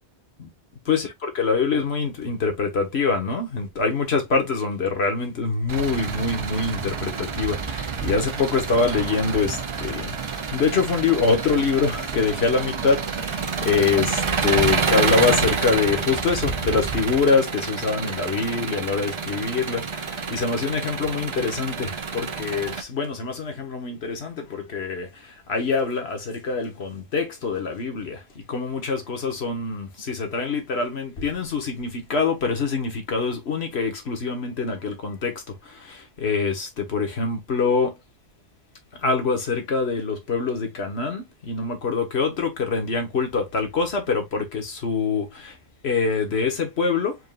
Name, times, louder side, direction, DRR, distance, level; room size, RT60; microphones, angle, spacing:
voice 1, 0.9-38.0 39.0-45.6 45.8-47.2, left 4 dB, 70° left, 1.5 m, -25 dB
Engine, 5.7-22.8, right 5 dB, 45° right, 0.4 m, -28 dB
4.6 x 3.5 x 2.4 m
omnidirectional pair, 1.1 m